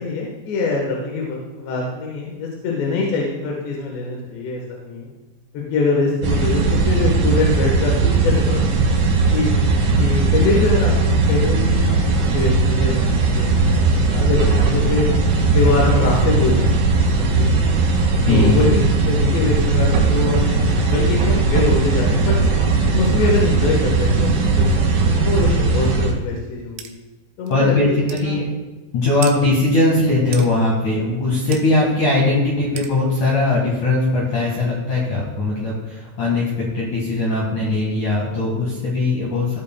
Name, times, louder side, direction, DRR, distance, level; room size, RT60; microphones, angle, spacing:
voice 1, 0.0-5.1 5.5-9.0 9.3-9.5 10.0-11.8 12.3-15.1 15.6-17.8 18.3-22.4 22.9-24.8 25.1-26.9 27.4-28.4, left 3 dB, 75° left, -2 dB, 3.3 m, -24 dB
sound 1, 6.2-26.1, right 3 dB, 60° right, 2.8 m, -18 dB
voice 2, 18.3-18.7 27.5-28.4 28.9-39.6, left 2 dB, 55° left, -5 dB, 2.4 m, -19 dB
sound 2, 26.8-26.9 27.5-27.6 28.1-28.3 29.2-29.4 30.3-30.5 31.5-31.7 32.8-32.9, right 9 dB, 85° right, 3.2 m, -33 dB
15.5 x 8.4 x 2.2 m, 1.2 s
omnidirectional pair, 5.3 m